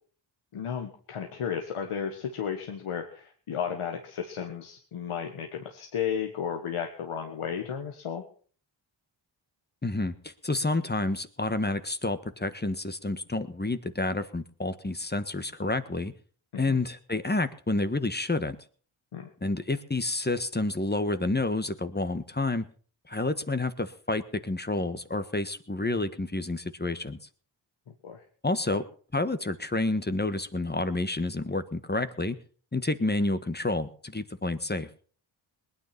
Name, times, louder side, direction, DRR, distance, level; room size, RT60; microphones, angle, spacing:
voice 1, 0.5-8.2 16.5-16.8 19.1-19.3 28.0-28.2 28.7-28.8, left 7 dB, 85° left, 4 dB, 1.8 m, -34 dB
voice 2, 9.8-16.1 16.5-18.6 19.4-22.7 23.1-27.2 28.4-28.8 29.1-32.4 32.7-34.9, left 2 dB, 20° left, 11 dB, 1.5 m, -29 dB
20.0 x 9.7 x 6.0 m, 0.44 s
cardioid pair, 55°, 50 cm